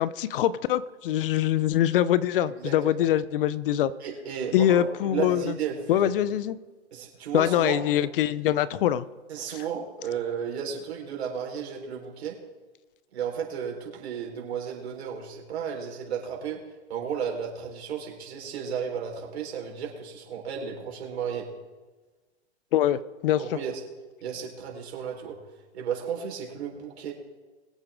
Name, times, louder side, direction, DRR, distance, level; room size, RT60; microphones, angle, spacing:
voice 1, 0.0-3.9 4.5-5.6 5.9-6.6 7.3-9.0 9.5-9.6 22.7-23.6, left 11 dB, 55° left, 17 dB, 0.7 m, -24 dB
voice 2, 2.5-3.1 4.0-6.1 6.9-7.8 9.3-12.4 13.1-16.6 16.9-21.5 23.4-23.8 24.2-25.4 25.7-27.1, right 7 dB, 70° right, 0 dB, 4.3 m, -33 dB
22.5 x 8.8 x 3.7 m, 1.3 s
hypercardioid pair, 120°, 34 cm